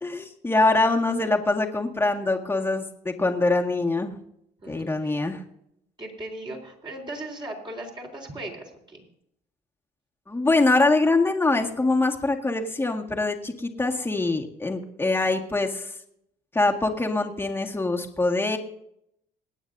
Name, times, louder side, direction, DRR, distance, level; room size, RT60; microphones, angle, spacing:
voice 1, 0.0-4.1 4.7-5.4 10.3-15.9 16.5-18.6, left 2 dB, 15° left, 2 dB, 1.8 m, -24 dB
voice 2, 4.6-5.2 6.0-9.1, right 1 dB, 30° right, 0 dB, 4.0 m, -38 dB
25.5 x 9.4 x 2.7 m, 0.75 s
cardioid pair, 110°, 17 cm